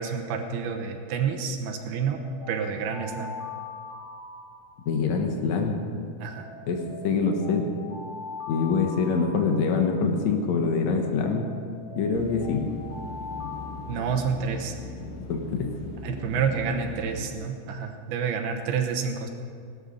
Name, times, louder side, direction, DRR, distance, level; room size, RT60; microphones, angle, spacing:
voice 1, 0.0-2.2 2.5-3.3 6.2-6.5 13.9-14.8 16.0-19.3, right 6 dB, 70° right, 3 dB, 2.8 m, -29 dB
Alarm, 1.9-5.2 6.4-10.2 11.4-14.7, left 4 dB, 35° right, 5.3 m, -42 dB
voice 2, 4.8-5.8 6.7-7.7 8.5-11.5 12.0-12.7 15.3-15.7, left 5 dB, 85° left, 3 dB, 1.5 m, -25 dB
sound 1, 12.1-17.3, left 2 dB, 60° left, 3.0 m, -39 dB
18.0 x 12.5 x 5.2 m, 2.3 s
omnidirectional pair, 5.1 m